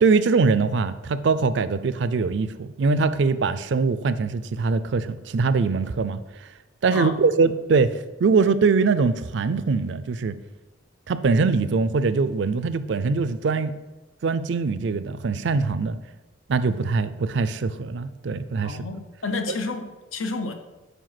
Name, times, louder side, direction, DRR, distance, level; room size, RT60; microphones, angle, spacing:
voice 1, 0.0-6.2 6.8-7.9 8.2-10.4 11.1-13.7 14.2-16.0 16.5-18.8, right 4 dB, 60° right, 13 dB, 0.4 m, -22 dB
voice 2, 18.6-20.5, left 3 dB, 85° left, 7 dB, 0.7 m, -30 dB
5.0 x 5.0 x 5.8 m, 1.1 s
head